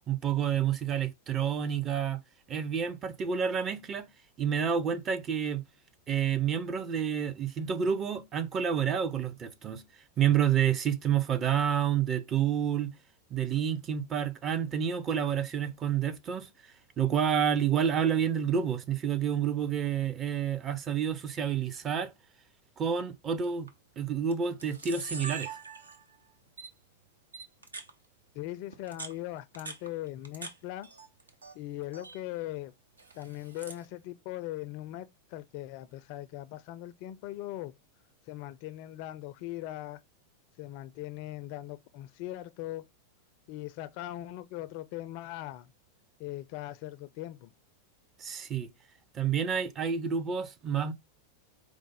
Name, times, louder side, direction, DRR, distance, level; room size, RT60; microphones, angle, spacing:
voice 1, 0.1-2.2 2.5-4.1 4.4-5.6 6.1-9.8 10.2-13.0 13.3-16.5 17.0-22.1 22.8-23.7 24.0-25.5 48.2-48.7 49.1-50.9, right 8 dB, 25° right, 0.6 m, -29 dB
Camera, 23.4-23.7 24.3-24.4 24.6-26.2 26.6-26.7 27.3-27.9 28.7-30.5 30.8-31.5 31.8-32.2 33.0-33.8, right 4 dB, 75° right, 0.6 m, -42 dB
voice 2, 28.3-30.9 31.5-32.7 33.1-37.7 38.3-40.0 40.6-42.9 43.5-45.7 46.2-47.5, left 15 dB, 45° left, 0.4 m, -40 dB
4.8 x 2.0 x 4.0 m
figure-of-eight pair, 90°, 0 cm